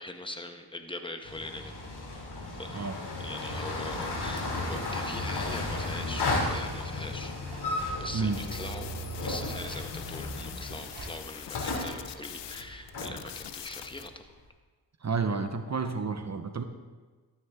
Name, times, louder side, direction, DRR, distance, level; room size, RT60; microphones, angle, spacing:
voice 1, 0.0-1.7 2.5-2.9 3.2-8.9 9.2-14.3, left 1 dB, 10° left, 6 dB, 1.3 m, -42 dB
sound 1, 1.2-14.2, left 2 dB, 65° left, 2.9 m, -34 dB
sound 2, 7.3-12.9, right 2 dB, 60° right, 3.3 m, -51 dB
voice 2, 8.1-8.4 15.0-16.6, right 4 dB, 40° right, 8 dB, 0.9 m, -30 dB
sound 3, 8.3-12.6 12.9-14.1, left 12 dB, 85° left, 0.6 m, -44 dB
12.5 x 9.5 x 3.7 m, 1.4 s
cardioid pair, 50°, 41 cm